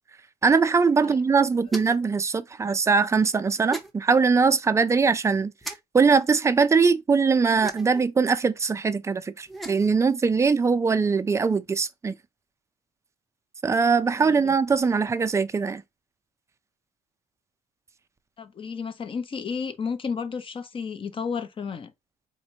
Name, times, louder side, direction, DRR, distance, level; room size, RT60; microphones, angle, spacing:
voice 1, 0.4-5.5 5.9-12.1 13.6-15.8, right 5 dB, 15° right, 0.4 m, -21 dB
sound 1, 1.7-2.1 3.7-3.9 5.6-5.8 7.6-8.1 9.4-9.9, right 2 dB, ahead, 0.7 m, -36 dB
voice 2, 14.2-14.5 18.4-21.9, left 6 dB, 30° left, 0.6 m, -32 dB
4.3 x 2.9 x 2.8 m
cardioid pair, 110°, 17 cm